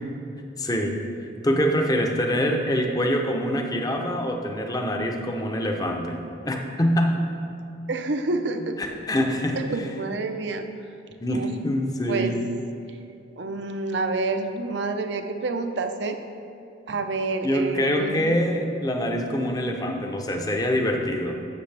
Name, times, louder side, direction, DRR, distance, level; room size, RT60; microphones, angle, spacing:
voice 1, 0.6-1.0 1.4-6.2 6.4-7.2 8.8-9.6 11.2-12.4 17.4-21.3, equal, 20° left, 3 dB, 0.7 m, -25 dB
voice 2, 7.9-8.7 9.7-10.6 11.3-11.5 12.1-12.3 12.9-13.0 13.4-16.2 16.9-18.4, right 3 dB, 65° right, 6 dB, 0.6 m, -28 dB
12.0 x 7.7 x 3.3 m, 2.7 s
head